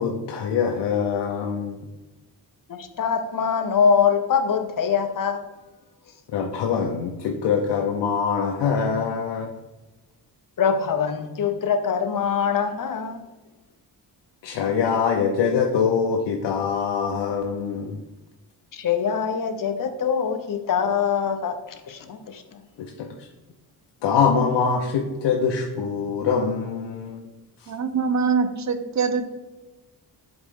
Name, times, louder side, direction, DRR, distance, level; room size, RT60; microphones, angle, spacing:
voice 1, 0.0-1.8 6.3-9.5 14.4-18.0 22.8-23.3 24.0-27.2 27.6-27.7, left 6 dB, 80° left, 0.7 m, -24 dB
voice 2, 2.7-5.4 10.6-13.3 18.7-21.6 21.9-22.6, left 6 dB, 50° left, 0.9 m, -23 dB
voice 3, 27.7-29.2, right 5 dB, 40° right, 0.8 m, -23 dB
7.7 x 4.0 x 3.7 m
cardioid pair, 85°, 42 cm